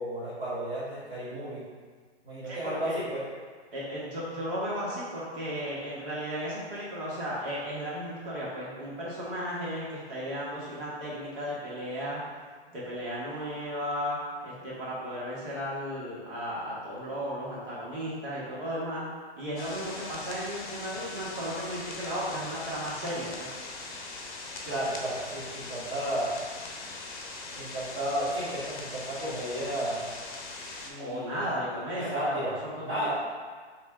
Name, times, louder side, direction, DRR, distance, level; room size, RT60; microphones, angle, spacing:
voice 1, 0.0-1.6 2.2-3.2 24.6-26.3 27.5-30.0 30.8-31.5 32.1-33.1, right 1 dB, 15° right, -13 dB, 1.5 m, -33 dB
voice 2, 2.5-3.0 3.7-12.2 12.7-14.2 14.4-19.1 19.4-23.5 31.0-33.1, equal, 50° right, -7 dB, 1.5 m, -35 dB
sound 1, 19.6-30.9, left 3 dB, 45° left, 0.8 m, -41 dB
4.2 x 3.2 x 3.6 m, 1.5 s
hypercardioid pair, 160°, 34 cm